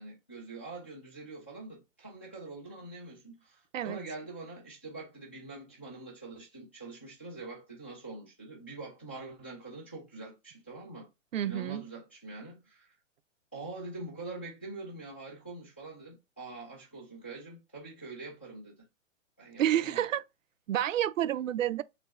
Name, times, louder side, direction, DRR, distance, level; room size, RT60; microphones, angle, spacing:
voice 1, 0.0-11.1 11.4-12.9 13.5-18.9 19.4-20.0, right 3 dB, 10° left, 0.3 m, -44 dB
voice 2, 11.3-11.8 19.6-20.2 20.7-21.8, right 11 dB, 75° right, 0.5 m, -29 dB
3.2 x 3.0 x 2.9 m
hypercardioid pair, 135°, 39 cm